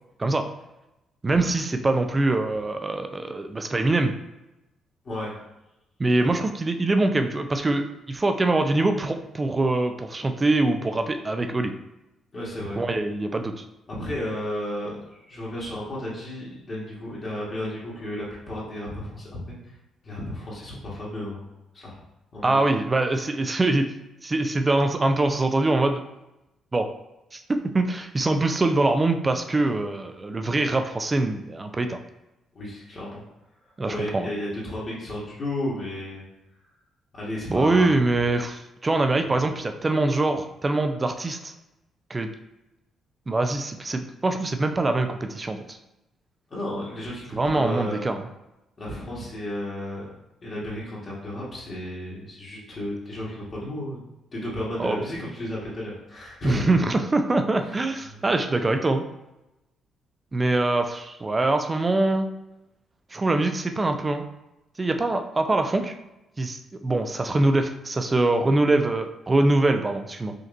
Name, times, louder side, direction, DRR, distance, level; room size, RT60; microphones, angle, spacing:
voice 1, 1.2-4.1 6.0-11.7 12.8-13.6 22.4-23.9 24.2-26.0 26.7-26.9 27.3-32.0 33.8-34.3 37.5-41.5 42.1-42.3 43.3-45.8 47.3-48.2 54.8-55.0 56.4-59.0 60.3-62.3 63.1-64.2 64.8-66.0 66.4-70.3, right 2 dB, 25° right, 6 dB, 0.4 m, -23 dB
voice 2, 5.0-5.3 6.2-6.4 12.3-12.8 13.9-15.0 15.3-19.6 20.0-21.4 21.7-22.0 22.3-22.7 23.2-23.3 32.5-33.2 33.8-36.2 37.1-37.9 46.5-48.1 48.8-50.1 50.4-54.0 54.3-56.8 57.6-57.7 58.1-58.2, left 1 dB, 40° left, -7 dB, 1.5 m, -33 dB
5.1 x 2.9 x 2.6 m, 0.92 s
cardioid pair, 90°, 0 cm